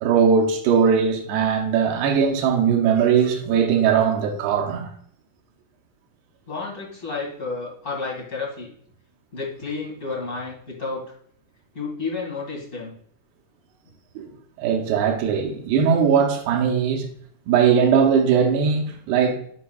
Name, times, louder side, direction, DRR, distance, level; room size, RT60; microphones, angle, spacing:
voice 1, 0.0-4.9 14.2-14.3 14.6-17.1 17.5-19.4, right 7 dB, 85° right, 2.9 m, -19 dB
voice 2, 6.5-8.7 9.3-11.0 11.7-12.9, left 4 dB, 30° left, 1.4 m, -31 dB
11.0 x 4.2 x 2.3 m
omnidirectional pair, 4.6 m